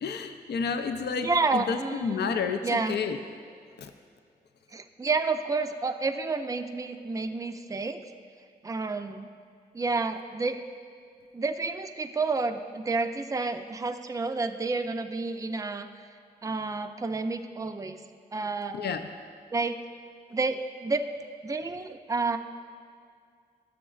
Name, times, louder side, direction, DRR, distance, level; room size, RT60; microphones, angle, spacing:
voice 1, 0.0-3.2 3.8-3.9 18.7-19.0, left 5 dB, 75° left, 7 dB, 0.4 m, -30 dB
voice 2, 1.2-2.3 2.6-3.0 4.7-8.0 8.6-9.3 9.7-10.6 11.3-15.9 16.4-18.0 18.3-18.8 19.5-19.8 20.3-21.1 21.4-22.4, right 3 dB, 20° right, 7 dB, 0.4 m, -30 dB
12.5 x 6.2 x 2.3 m, 2.2 s
cardioid pair, 50°, 17 cm